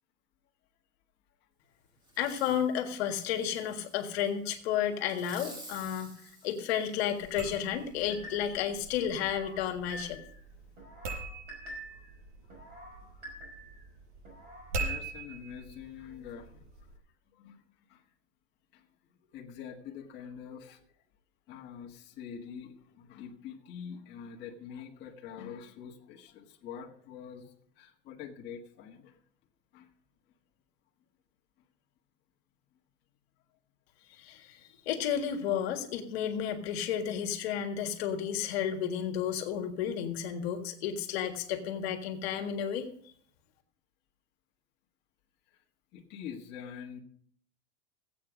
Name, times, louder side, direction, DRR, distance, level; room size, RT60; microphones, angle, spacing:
Fireworks, 2.1-2.7 3.2-4.3 5.0-7.4 8.0-8.1, right 1 dB, 10° right, 2.1 m, -51 dB
voice 1, 2.2-10.2 34.1-42.9, left 9 dB, 60° left, 5 dB, 1.8 m, -32 dB
sound 1, 7.2-17.0, right 3 dB, 80° right, 5.5 m, -43 dB
sound 2, 8.1-8.7 9.2-10.4 10.8-12.1 12.5-13.9 14.3-14.8, equal, 30° right, 5.1 m, -47 dB
voice 2, 13.0-13.7 14.7-16.7 17.3-17.6 17.9-18.0 18.7-18.9 19.3-20.8 21.5-29.2 29.7-29.9 45.5-45.6 45.9-47.0, left 7 dB, 30° left, -2 dB, 1.6 m, -45 dB
16.0 x 8.7 x 5.1 m, 0.63 s
supercardioid pair, 160°, 35 cm